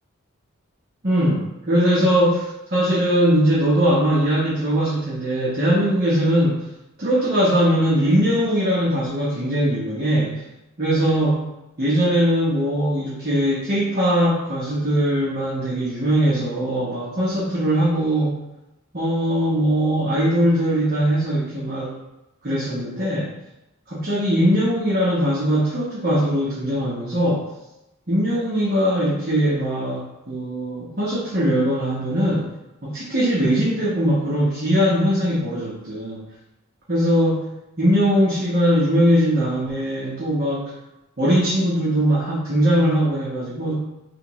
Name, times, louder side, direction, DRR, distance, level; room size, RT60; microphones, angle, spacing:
voice 1, 1.0-6.7 7.0-10.4 10.8-11.4 11.8-18.4 18.9-22.0 22.4-23.3 23.9-27.5 28.1-32.5 32.8-36.2 36.9-40.7 41.2-43.8, equal, 45° right, -7 dB, 1.0 m, -20 dB
3.5 x 3.0 x 4.6 m, 0.96 s
head